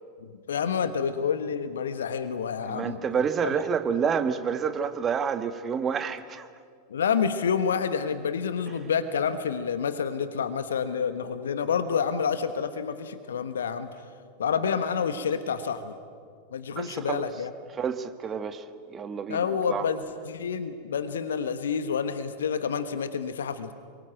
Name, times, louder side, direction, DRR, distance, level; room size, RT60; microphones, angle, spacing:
voice 1, 0.2-3.5 6.9-13.9 14.4-15.9 16.5-17.5 19.3-23.7, left 6 dB, 65° left, 10 dB, 1.3 m, -28 dB
voice 2, 2.7-6.5 16.8-17.3 17.7-19.9, right 6 dB, 25° right, 10 dB, 1.6 m, -29 dB
27.5 x 23.5 x 9.2 m, 2.1 s
figure-of-eight pair, 90°, 0 cm